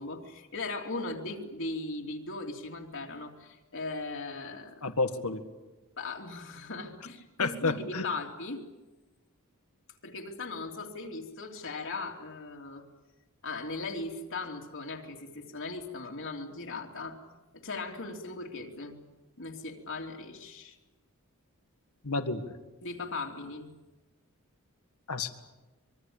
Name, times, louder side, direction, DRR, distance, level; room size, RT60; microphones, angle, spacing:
voice 1, 0.0-4.9 6.0-8.6 10.0-12.9 13.4-17.2 17.5-19.0 19.4-20.8 22.8-23.7, left 3 dB, 60° left, 1 dB, 3.1 m, -38 dB
voice 2, 4.8-5.4 7.4-8.0 22.0-22.4 25.1-25.3, left 3 dB, 75° left, 8 dB, 1.8 m, -30 dB
25.0 x 23.0 x 8.8 m, 1.1 s
head